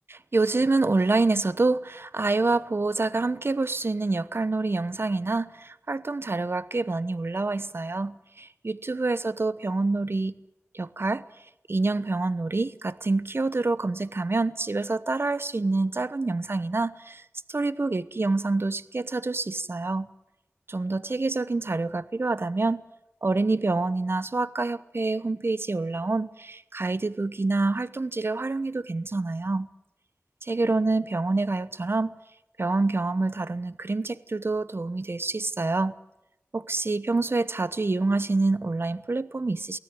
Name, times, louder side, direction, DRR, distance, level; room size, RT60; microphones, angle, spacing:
voice 1, 0.1-10.3 10.7-11.2 11.7-17.2 17.5-20.1 20.7-22.8 23.2-29.7 30.4-32.1 32.6-35.9 36.5-39.8, right 3 dB, 55° right, 1.0 m, -27 dB
24.0 x 16.5 x 9.4 m
wide cardioid pair, 40°, 5 cm